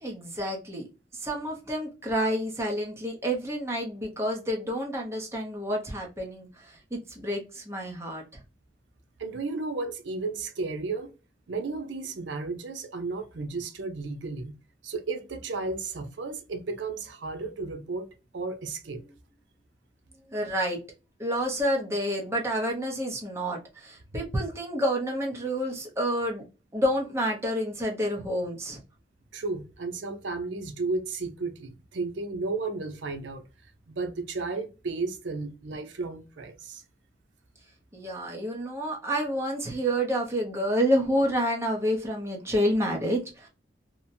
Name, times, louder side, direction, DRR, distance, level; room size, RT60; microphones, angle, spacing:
voice 1, 0.0-0.8 1.1-8.2 20.3-20.8 21.2-26.4 26.7-28.8 37.9-43.5, equal, 15° right, 0.7 m, -29 dB
voice 2, 9.2-11.1 11.5-14.5 14.8-18.1 18.3-19.0 29.3-33.4 33.9-36.8, right 3 dB, 85° right, 0.5 m, -33 dB
2.8 x 2.1 x 2.6 m
head